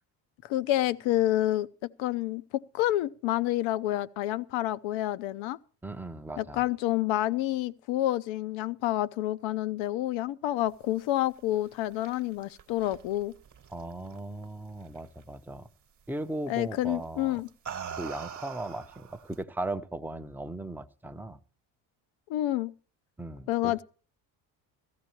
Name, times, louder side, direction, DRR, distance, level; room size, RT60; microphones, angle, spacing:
voice 1, 0.4-1.7 2.0-5.6 6.4-13.3 16.5-17.5 22.3-22.7 23.5-23.8, left 14 dB, 70° left, 0.7 m, -28 dB
voice 2, 5.8-6.7 13.7-15.7 16.1-17.4 17.9-21.4 23.2-23.7, right 2 dB, 5° right, 0.6 m, -37 dB
sound 1, 11.6-14.4 14.8-15.2 16.5-16.7 17.3-19.4, right 7 dB, 40° right, 1.2 m, -43 dB
16.5 x 13.5 x 3.0 m
supercardioid pair, 75°, 48 cm